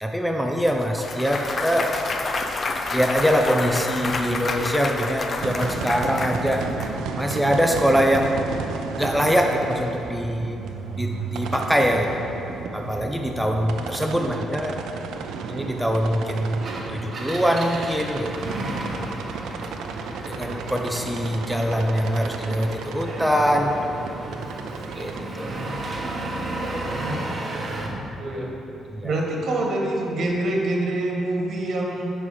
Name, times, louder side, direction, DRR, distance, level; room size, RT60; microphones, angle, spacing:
voice 1, 0.0-1.9 2.9-6.7 7.2-8.4 9.0-10.6 10.9-12.2 12.5-14.8 15.5-18.5 20.3-23.8 24.9-25.7 27.9-28.0 28.9-29.2, equal, ahead, 2 dB, 0.6 m, -23 dB
Clapping / Cheering / Applause, 0.7-6.9, left 3 dB, 40° left, 0.6 m, -29 dB
sound 1, 5.4-25.2, right 5 dB, 85° right, 0.5 m, -33 dB
Engine, 16.5-28.0, right 2 dB, 40° right, 1.3 m, -33 dB
voice 2, 28.2-28.5 29.0-32.1, right 1 dB, 60° right, 0 dB, 1.6 m, -25 dB
9.5 x 5.5 x 4.9 m, 2.8 s
cardioid pair, 90°, 0 cm